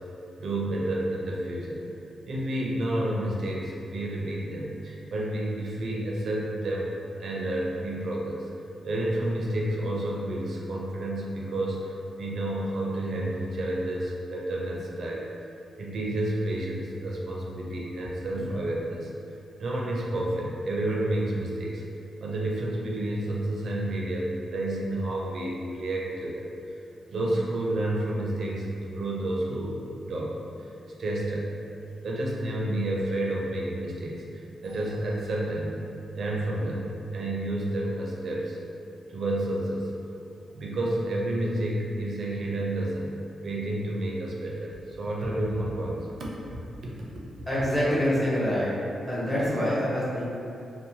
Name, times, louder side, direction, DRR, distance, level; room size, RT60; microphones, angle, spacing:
voice 1, 0.4-1.9 2.3-6.9 7.2-8.4 8.8-15.3 15.8-19.1 19.6-21.8 22.2-26.5 27.1-29.8 30.1-30.7 31.0-31.5 32.0-35.8 36.2-38.6 39.1-39.9 40.5-46.3, right 1 dB, 55° right, -3 dB, 0.4 m, -30 dB
voice 2, 47.5-48.7 49.1-50.3, equal, 15° left, -9 dB, 0.8 m, -25 dB
2.7 x 2.0 x 2.8 m, 2.7 s
wide cardioid pair, 160°, 0 cm